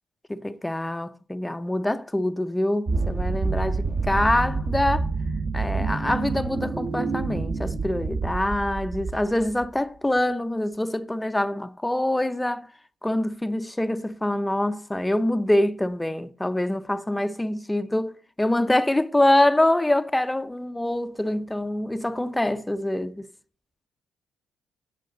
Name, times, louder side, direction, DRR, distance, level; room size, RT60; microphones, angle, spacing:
voice 1, 0.3-5.1 5.5-12.7 13.0-23.3, left 1 dB, 10° left, 0.7 m, -25 dB
sound 1, 2.9-9.7, right 4 dB, 45° right, 1.5 m, -27 dB
14.0 x 7.5 x 3.9 m
cardioid pair, 90°, 0 cm